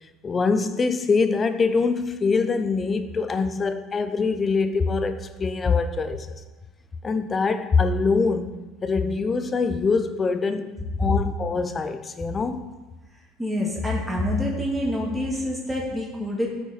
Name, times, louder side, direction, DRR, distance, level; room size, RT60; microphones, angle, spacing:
voice 1, 0.2-6.3 7.0-8.5 8.8-12.7, left 4 dB, 30° left, 0.7 m, -24 dB
voice 2, 13.4-16.5, left 1 dB, 10° right, 2.0 m, -26 dB
13.5 x 4.6 x 4.1 m
hypercardioid pair, 75°, 0 cm